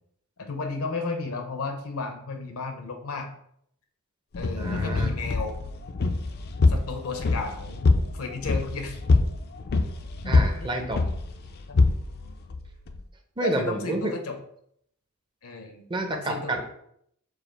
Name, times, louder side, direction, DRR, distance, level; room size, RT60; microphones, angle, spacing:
voice 1, 0.4-3.3 4.4-5.6 6.7-9.0 10.2-10.7 11.7-11.8 13.4-14.4 15.4-16.5, left 3 dB, 75° left, 4 dB, 0.7 m, -34 dB
sound 1, 4.3-13.0, left 3 dB, 45° left, 0.4 m, -25 dB
voice 2, 4.6-5.1 10.2-11.0 13.4-14.1 15.9-16.7, right 2 dB, 20° right, 4 dB, 0.5 m, -29 dB
4.7 x 2.4 x 4.5 m, 0.70 s
head